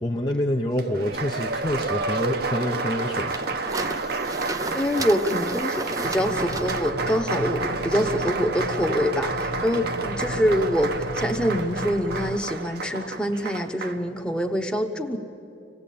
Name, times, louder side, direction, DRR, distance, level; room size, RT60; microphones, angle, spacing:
voice 1, 0.0-3.5, left 1 dB, 20° left, 2 dB, 0.7 m, -27 dB
Applause, 0.8-14.0, right 3 dB, 50° right, 1.0 m, -30 dB
sound 1, 1.1-6.9, right 2 dB, 20° right, 0.5 m, -36 dB
voice 2, 4.7-15.2, equal, 5° left, 4 dB, 1.0 m, -25 dB
sound 2, 6.0-12.4, left 2 dB, 70° left, 0.8 m, -35 dB
25.5 x 18.0 x 8.5 m, 2.7 s
head